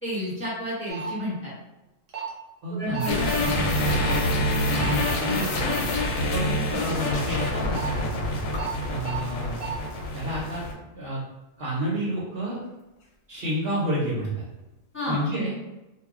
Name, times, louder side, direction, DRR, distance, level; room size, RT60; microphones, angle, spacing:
voice 1, 0.0-1.5 2.7-3.7 14.9-15.2, left 1 dB, 10° left, -9 dB, 0.9 m, -31 dB
sound 1, 0.9-1.1 2.1-2.3 2.9-3.1 4.0-4.2 4.7-4.9 7.5-7.8 8.6-8.7 9.0-9.2 9.6-9.7, right 6 dB, 75° right, 1.1 m, -34 dB
voice 2, 2.6-3.1 4.3-5.9 6.3-8.4 8.9-9.5 10.1-10.6 10.9-11.2 11.6-12.6 13.3-14.4 15.1-15.5, right 1 dB, 55° right, -6 dB, 1.0 m, -30 dB
sound 2, 3.0-6.5 6.9-7.0 8.5-8.7 9.9-10.0 13.0-13.1 13.4-13.5 14.0-14.1 14.6-14.7 15.2-15.3, left 4 dB, 65° left, 0.7 m, -39 dB
sound 3, 3.1-10.7, left 1 dB, 90° left, 1.0 m, -26 dB
2.3 x 2.1 x 3.5 m, 1.0 s
omnidirectional pair, 1.3 m